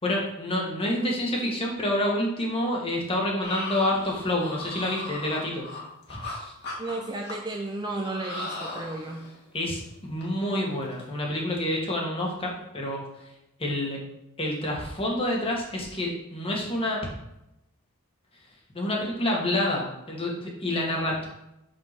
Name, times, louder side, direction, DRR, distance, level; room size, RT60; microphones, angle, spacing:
voice 1, 0.0-5.7 6.1-6.5 9.5-13.0 13.6-14.0 14.4-17.0 18.7-21.3, left 1 dB, 25° left, -2 dB, 1.8 m, -28 dB
sound 1, 3.4-6.4 6.6-7.6 8.0-9.4 9.8-9.9 10.2-10.4 10.7-11.0 11.4-11.6, left 2 dB, 50° left, 2.1 m, -37 dB
voice 2, 6.8-9.2, right 2 dB, 20° right, 0 dB, 0.6 m, -33 dB
5.5 x 5.1 x 6.0 m, 0.87 s
head